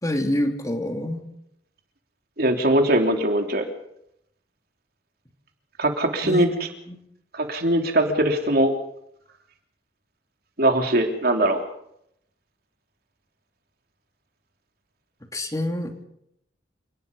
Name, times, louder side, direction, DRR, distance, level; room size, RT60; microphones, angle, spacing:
voice 1, 0.0-1.2 6.2-6.5 6.9-7.0 15.3-16.0, left 1 dB, 20° left, 4 dB, 2.9 m, -26 dB
voice 2, 2.4-3.6 5.8-6.5 7.3-8.7 10.6-11.6, right 1 dB, 60° right, 4 dB, 3.4 m, -21 dB
28.5 x 19.5 x 5.5 m, 0.75 s
head